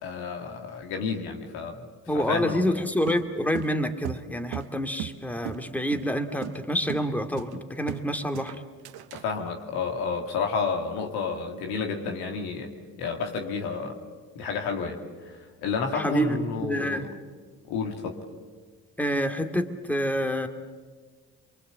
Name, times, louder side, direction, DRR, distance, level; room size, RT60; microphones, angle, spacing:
voice 1, 0.0-1.8 2.1-2.6 9.1-12.7 13.0-14.0 14.4-17.1 17.7-18.2, left 5 dB, 85° left, 3 dB, 2.3 m, -30 dB
voice 2, 2.1-8.6 15.9-17.1 19.0-20.5, equal, 5° left, 6 dB, 2.2 m, -27 dB
sound 1, 3.1-5.2 5.5-5.6 5.9-6.1 6.4-6.6 6.9-7.1 7.4-8.1 8.3-9.3, right 13 dB, 80° right, 0.8 m, -36 dB
24.0 x 23.5 x 8.0 m, 1.5 s
supercardioid pair, 50°, 37 cm